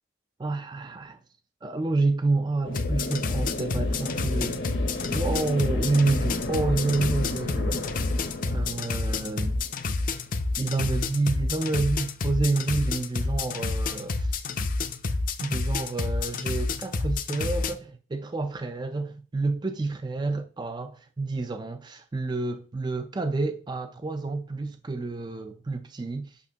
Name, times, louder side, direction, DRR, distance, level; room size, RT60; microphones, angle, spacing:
voice 1, 0.4-1.2 1.6-4.6 5.1-7.9 8.4-9.6 10.6-14.3 15.4-26.4, right 3 dB, 20° right, 0.4 m, -29 dB
sound 1, 2.6-10.2, left 2 dB, 75° left, 1.0 m, -34 dB
sound 2, 2.7-17.7, left 3 dB, 45° left, 0.5 m, -29 dB
8.3 x 6.0 x 2.8 m
head